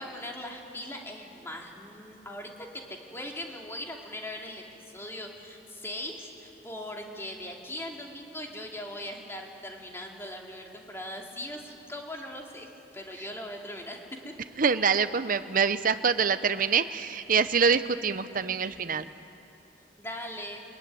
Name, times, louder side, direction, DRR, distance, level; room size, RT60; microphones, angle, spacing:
voice 1, 0.0-14.5 20.0-20.6, left 1 dB, 15° left, 0 dB, 2.8 m, -40 dB
voice 2, 14.6-19.1, right 6 dB, 50° right, 12 dB, 0.8 m, -25 dB
22.5 x 21.0 x 9.7 m, 2.7 s
head